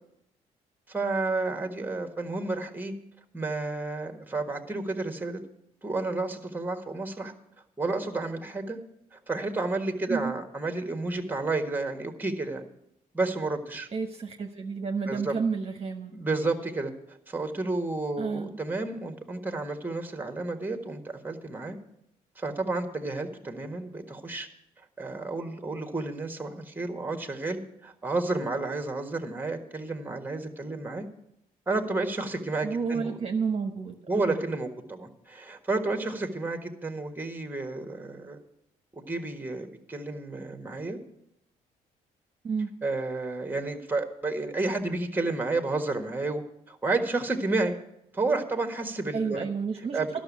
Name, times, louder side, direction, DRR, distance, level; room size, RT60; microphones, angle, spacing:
voice 1, 0.9-2.9 3.3-5.4 5.8-7.3 7.8-8.8 9.1-12.7 13.1-13.9 15.1-15.3 16.1-21.8 22.3-24.5 25.0-31.0 31.7-33.2 34.1-38.4 38.9-41.0 42.8-47.8 48.1-49.5 49.9-50.1, right 3 dB, 10° right, 5 dB, 1.6 m, -31 dB
voice 2, 13.9-16.1 18.2-18.5 32.6-34.4 42.4-42.7 49.1-50.1, right 5 dB, 40° right, 3 dB, 1.1 m, -31 dB
11.5 x 6.2 x 8.4 m, 0.81 s
supercardioid pair, 70°, 16 cm